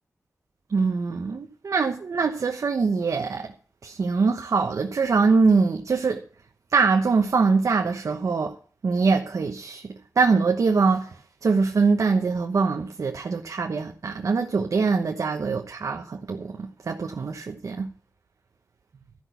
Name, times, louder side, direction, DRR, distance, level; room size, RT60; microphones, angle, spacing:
voice 1, 0.7-3.4 3.8-6.2 6.7-8.5 8.8-9.8 10.2-11.0 11.4-16.0 16.3-16.5 16.9-17.9, right 4 dB, 75° right, 1.0 m, -23 dB
13.5 x 6.0 x 8.1 m
cardioid pair, 55°, 6 cm